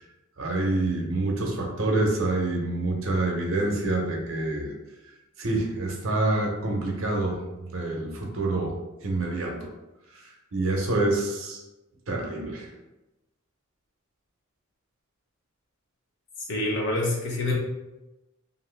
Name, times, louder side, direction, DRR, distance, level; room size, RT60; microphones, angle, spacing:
voice 1, 0.4-4.7 5.4-8.7 9.0-9.7 10.5-11.6 12.1-12.7, right 2 dB, 75° right, 0 dB, 0.7 m, -27 dB
voice 2, 16.5-17.5, left 2 dB, 55° left, -2 dB, 0.7 m, -26 dB
2.7 x 2.5 x 3.2 m, 1.0 s
head